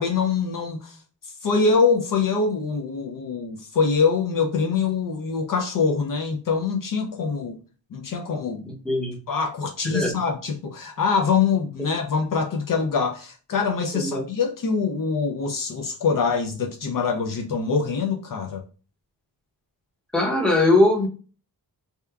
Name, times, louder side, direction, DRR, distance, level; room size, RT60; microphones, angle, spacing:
voice 1, 0.0-7.6 7.9-8.7 9.3-18.6, left 5 dB, 55° left, 0.5 m, -24 dB
voice 2, 8.8-9.2 9.8-10.1 13.9-14.2 20.1-21.1, left 2 dB, ahead, 0.7 m, -20 dB
2.8 x 2.2 x 2.3 m
cardioid pair, 65°, 41 cm